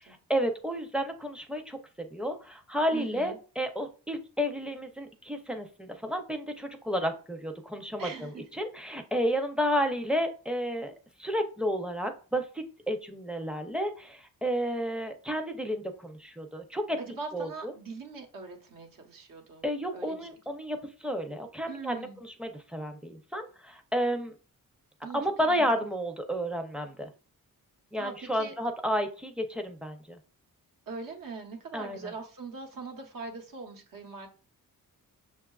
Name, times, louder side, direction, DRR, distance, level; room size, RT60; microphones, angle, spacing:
voice 1, 0.0-1.8 2.1-8.3 8.6-10.9 11.2-17.0 17.3-17.7 19.6-24.4 25.1-27.1 27.9-30.2 31.7-32.1, equal, 5° right, 0.5 m, -31 dB
voice 2, 2.9-3.4 8.0-8.4 17.0-19.6 19.9-20.3 21.7-22.2 25.0-25.2 25.5-25.7 28.0-28.5 30.9-34.3, right 4 dB, 70° right, 0.9 m, -41 dB
6.3 x 2.3 x 2.3 m
wide cardioid pair, 110°, 35 cm